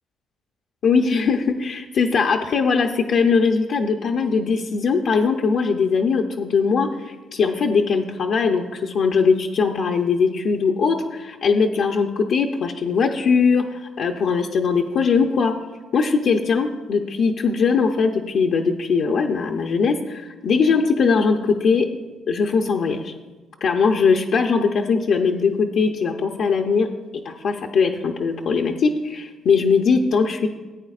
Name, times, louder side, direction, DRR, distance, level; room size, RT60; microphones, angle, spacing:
voice 1, 0.8-15.5 15.9-21.9 22.3-23.1 23.6-26.9 27.2-30.5, left 5 dB, 70° left, 1 dB, 0.6 m, -20 dB
15.0 x 8.4 x 2.4 m, 1.3 s
cardioid pair, 90°, 0 cm